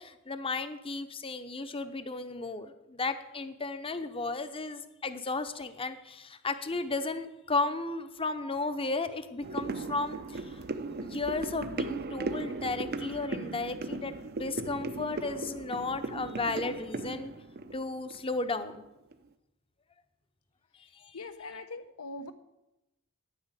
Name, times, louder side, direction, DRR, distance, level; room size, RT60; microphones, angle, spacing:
voice 1, 0.0-10.6 11.0-17.3 17.7-18.8 20.9-21.2, left 3 dB, 25° left, 10 dB, 0.8 m, -34 dB
sound 1, 9.4-18.8 19.1-19.2, right 2 dB, 45° right, 0.7 m, -37 dB
voice 2, 21.1-22.3, left 2 dB, 90° left, 9 dB, 1.1 m, -41 dB
9.6 x 9.2 x 8.2 m, 0.94 s
head